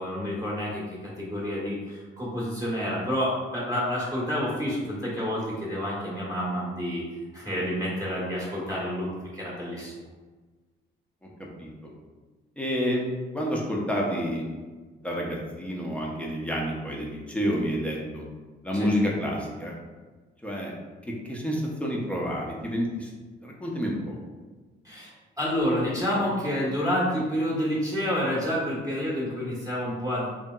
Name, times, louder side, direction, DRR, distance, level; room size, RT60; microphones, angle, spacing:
voice 1, 0.0-7.1 7.3-9.1 9.3-9.9 18.7-18.9 24.8-30.3, equal, 15° right, -6 dB, 0.9 m, -29 dB
voice 2, 12.6-13.0 13.3-14.4 15.0-18.3 18.6-19.7 20.4-20.7 21.2-23.1 23.4-24.2, equal, 5° left, -3 dB, 0.6 m, -29 dB
2.8 x 2.7 x 2.3 m, 1.3 s
cardioid pair, 90°, 20 cm